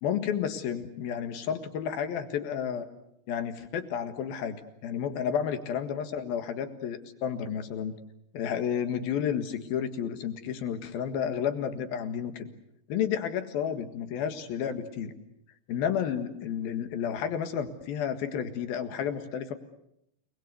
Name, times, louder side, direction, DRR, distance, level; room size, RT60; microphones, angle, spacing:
voice 1, 0.0-2.9 3.3-8.0 8.3-12.5 12.9-15.1 15.7-19.5, left 8 dB, 70° left, 8 dB, 3.4 m, -31 dB
30.0 x 20.5 x 8.3 m, 0.79 s
omnidirectional pair, 4.5 m